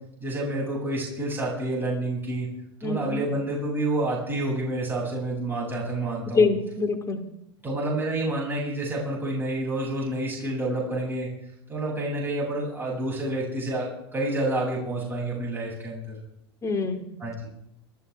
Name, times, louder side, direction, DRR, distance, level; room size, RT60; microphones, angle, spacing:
voice 1, 0.2-2.5 2.8-6.5 7.6-11.3 11.7-16.2 17.2-17.5, right 1 dB, 15° right, -5 dB, 7.1 m, -28 dB
voice 2, 2.8-3.2 6.3-7.2 16.6-17.1, left 4 dB, 25° left, 6 dB, 2.5 m, -24 dB
27.5 x 12.0 x 3.5 m, 0.78 s
hypercardioid pair, 95°, 13 cm